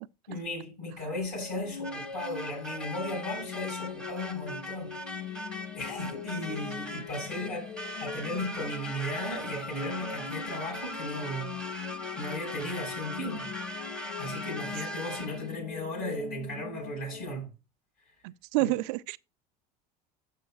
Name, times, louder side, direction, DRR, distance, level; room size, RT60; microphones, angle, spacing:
voice 1, 0.3-5.0 5.7-13.5 14.2-17.5 18.6-18.7, left 1 dB, 50° left, 5.6 m, -36 dB
sound 1, 1.0-17.3, left 7 dB, 80° left, 1.1 m, -42 dB
sound 2, 1.8-15.5, left 1 dB, 5° left, 1.2 m, -40 dB
voice 2, 18.2-19.2, right 20 dB, 75° right, 0.4 m, -28 dB
12.0 x 6.9 x 2.3 m
hypercardioid pair, 90°, 21 cm